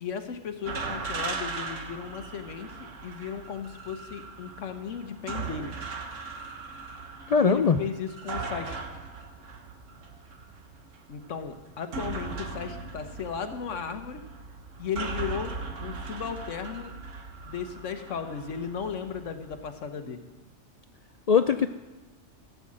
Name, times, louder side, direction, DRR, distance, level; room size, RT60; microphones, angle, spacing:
voice 1, 0.0-5.8 7.4-8.8 11.1-14.2 14.8-17.0 17.4-20.2, left 7 dB, 80° left, 7 dB, 1.3 m, -35 dB
sound 1, 0.6-19.7, right 4 dB, 90° right, 1.7 m, -39 dB
voice 2, 7.3-7.8 21.3-21.7, left 6 dB, 60° left, 9 dB, 0.4 m, -20 dB
15.5 x 6.8 x 7.5 m, 1.1 s
omnidirectional pair, 1.3 m